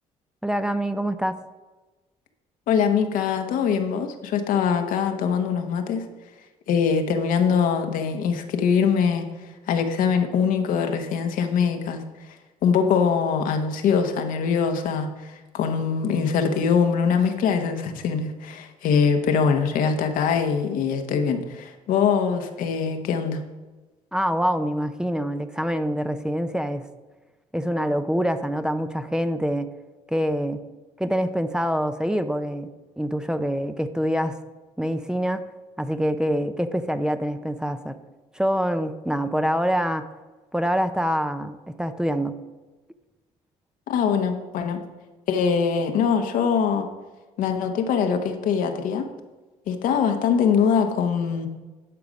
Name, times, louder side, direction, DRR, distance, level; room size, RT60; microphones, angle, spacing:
voice 1, 0.4-1.4 24.1-26.9 27.5-29.7 30.1-30.6 31.0-32.7 33.0-34.4 34.8-35.5 35.8-38.0 38.3-40.1 40.5-42.3, equal, 5° right, 10 dB, 0.6 m, -25 dB
voice 2, 2.7-6.1 6.7-9.2 9.7-12.0 12.3-12.4 12.6-23.4 43.9-44.8 45.3-46.9 47.4-49.1 49.7-51.5, left 6 dB, 70° left, 6 dB, 1.1 m, -23 dB
11.0 x 4.8 x 5.2 m, 1.2 s
supercardioid pair, 70°, 14 cm